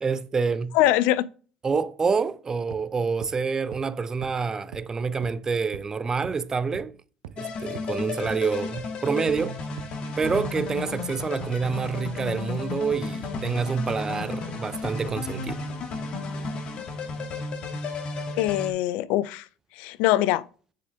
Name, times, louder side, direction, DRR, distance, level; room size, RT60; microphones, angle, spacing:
voice 1, 0.0-0.8 1.6-6.9 7.4-9.6 10.2-15.6, right 5 dB, 25° right, 0.6 m, -27 dB
voice 2, 0.7-1.3 18.4-19.5 19.7-20.5, left 14 dB, 70° left, 0.4 m, -23 dB
sound 1, 2.7-2.8 3.2-3.3 3.7-3.8 4.2-4.3 4.7-4.8 5.2-5.3 5.7-5.8 6.2-6.3 6.7-6.8 7.2-7.3 7.7-7.8 8.3-8.4 8.8-8.9 9.3-9.4 9.8-9.9 10.3-10.4, right 12 dB, 85° right, 0.7 m, -40 dB
sound 2, 7.4-18.7, left 3 dB, 50° left, 1.8 m, -33 dB
7.6 x 6.8 x 3.5 m
supercardioid pair, 80°, 2 cm